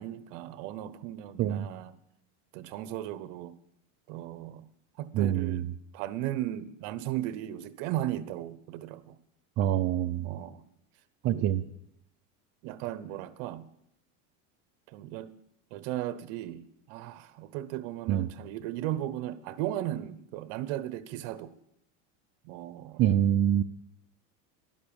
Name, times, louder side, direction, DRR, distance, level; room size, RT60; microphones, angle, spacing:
voice 1, 0.0-1.9 2.5-3.5 4.1-4.7 5.0-5.7 5.9-9.2 10.2-10.6 11.3-11.7 12.6-13.7 14.9-15.3 15.7-21.5 22.4-23.0, right 13 dB, 65° right, 1.0 m, -36 dB
voice 2, 5.1-5.6 9.6-10.3 11.2-11.6 18.1-18.3 23.0-23.6, right 11 dB, 35° right, 0.4 m, -25 dB
11.5 x 11.0 x 7.0 m
cardioid pair, 150°, 39 cm